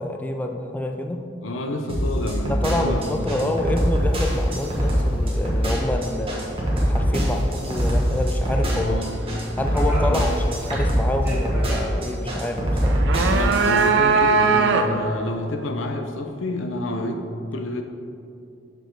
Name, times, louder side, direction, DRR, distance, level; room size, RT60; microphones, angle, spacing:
voice 1, 0.0-1.3 2.5-6.3 6.9-9.0 9.6-13.1, left 1 dB, 10° left, 4 dB, 0.3 m, -27 dB
voice 2, 1.4-3.6 8.7-9.1 10.0-10.3 13.2-17.8, left 1 dB, 90° left, 5 dB, 0.6 m, -29 dB
sound 1, 1.9-13.9, equal, 30° right, 1.2 m, -23 dB
sound 2, 2.6-12.3, equal, 10° right, 1.2 m, -38 dB
sound 3, 12.8-15.2, right 5 dB, 65° right, 0.4 m, -19 dB
6.4 x 4.9 x 3.8 m, 2.6 s
head